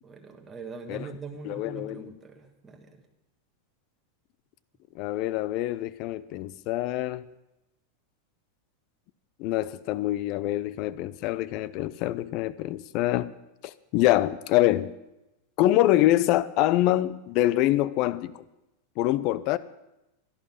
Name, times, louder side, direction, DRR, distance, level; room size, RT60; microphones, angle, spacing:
voice 1, 0.0-3.0, right 4 dB, 15° right, 1.6 m, -42 dB
voice 2, 1.4-2.1 4.9-7.3 9.4-13.3 13.6-14.9 15.6-18.3 19.0-19.6, left 15 dB, 50° left, 0.6 m, -25 dB
12.0 x 11.0 x 5.6 m
hypercardioid pair, 100°, 0 cm